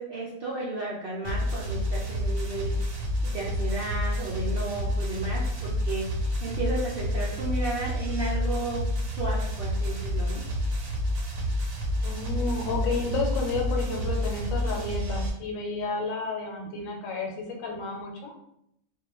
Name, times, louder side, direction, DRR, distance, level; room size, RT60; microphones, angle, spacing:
voice 1, 0.0-2.8 3.2-6.1 6.4-8.9 9.2-10.4, right 2 dB, 65° right, -6 dB, 0.5 m, -33 dB
sound 1, 1.2-15.3, left 1 dB, 80° right, 1.1 m, -29 dB
voice 2, 12.0-18.3, left 3 dB, 80° left, 0 dB, 1.0 m, -31 dB
2.3 x 2.1 x 2.9 m, 0.77 s
omnidirectional pair, 1.4 m